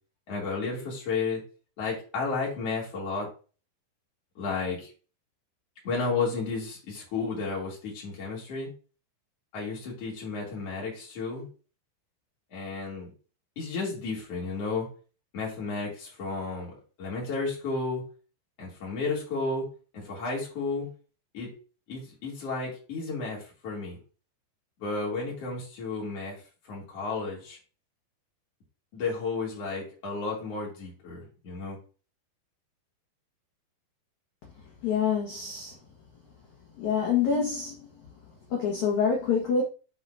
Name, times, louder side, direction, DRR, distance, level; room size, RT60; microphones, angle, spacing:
voice 1, 0.3-1.4 1.8-3.3 4.4-4.9 5.8-8.7 9.5-11.5 12.5-13.1 13.6-14.9 15.3-18.1 18.6-19.7 19.9-20.9 21.3-21.5 21.9-24.0 24.8-27.6 28.9-31.8, left 4 dB, 35° left, 3.4 m, -32 dB
voice 2, 34.8-35.7 36.8-37.7 38.5-39.6, left 6 dB, 65° left, 1.8 m, -26 dB
9.3 x 4.9 x 2.7 m
omnidirectional pair, 5.4 m